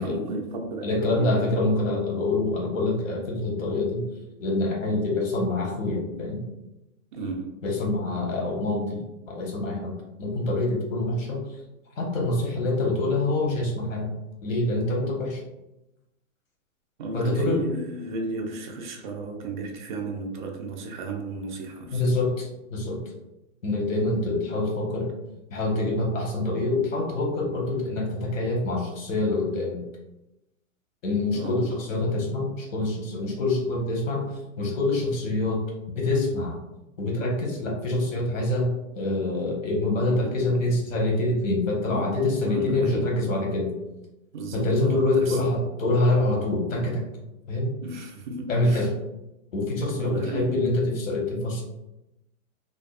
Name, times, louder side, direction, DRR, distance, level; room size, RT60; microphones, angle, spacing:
voice 1, 0.0-1.6 7.1-7.6 17.0-22.0 31.3-31.6 40.2-40.4 41.9-42.1 42.4-43.1 44.3-45.4 47.8-48.9 49.9-50.6, right 3 dB, 40° right, 2 dB, 0.4 m, -34 dB
voice 2, 0.8-4.0 4.4-6.4 7.6-9.0 9.3-9.9 10.2-11.4 12.0-14.1 14.4-15.4 17.1-17.6 21.9-23.0 23.6-25.1 25.5-29.8 31.0-34.3 34.6-35.6 36.0-36.5 37.0-43.7 44.5-47.0 47.5-47.7 48.5-48.9 49.5-51.6, left 2 dB, 75° left, -1 dB, 1.0 m, -25 dB
2.6 x 2.3 x 2.2 m, 0.93 s
hypercardioid pair, 150°, 40 cm